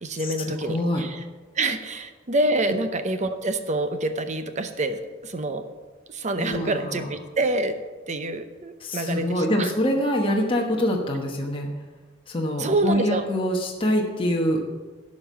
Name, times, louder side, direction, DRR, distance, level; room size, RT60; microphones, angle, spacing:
voice 1, 0.0-1.2 1.5-5.7 6.1-9.7 12.6-13.3, right 2 dB, 40° right, 9 dB, 0.7 m, -27 dB
voice 2, 0.6-1.0 6.4-7.1 8.8-11.7 12.3-14.6, equal, 25° left, 0 dB, 1.1 m, -25 dB
11.5 x 5.3 x 7.5 m, 1.3 s
head